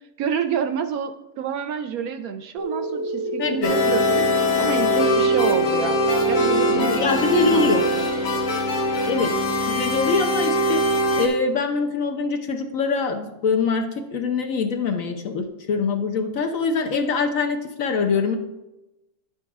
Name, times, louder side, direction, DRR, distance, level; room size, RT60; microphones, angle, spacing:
voice 1, 0.2-6.0 6.3-8.1, right 7 dB, 70° right, 9 dB, 1.0 m, -28 dB
sound 1, 2.6-10.9, equal, 40° left, 0.3 m, -31 dB
voice 2, 3.4-3.7 6.7-7.8 9.0-9.3 9.7-18.3, left 4 dB, 60° left, 4 dB, 1.1 m, -24 dB
sound 2, 3.6-11.3, equal, 80° left, 2.0 m, -22 dB
9.9 x 7.0 x 3.5 m, 0.97 s
omnidirectional pair, 1.8 m